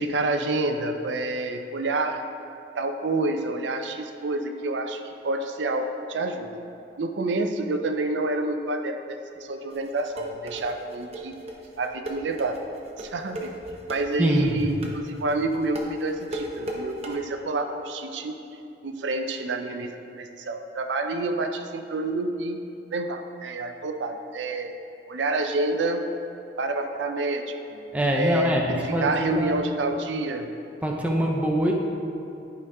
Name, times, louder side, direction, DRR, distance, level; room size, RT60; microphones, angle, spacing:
voice 1, 0.0-2.2 2.8-6.6 7.0-11.3 11.8-12.6 13.0-13.5 13.9-18.3 18.8-19.9 20.2-22.6 22.9-24.7 25.1-26.0 26.6-27.8 28.1-30.5, right 2 dB, 90° right, 6 dB, 0.6 m, -28 dB
sound 1, 9.7-17.1, right 1 dB, 35° right, 0.8 m, -36 dB
voice 2, 14.2-14.6 27.9-29.6 30.8-31.7, right 1 dB, 10° right, 0 dB, 0.7 m, -24 dB
11.0 x 5.1 x 3.5 m, 2.8 s
head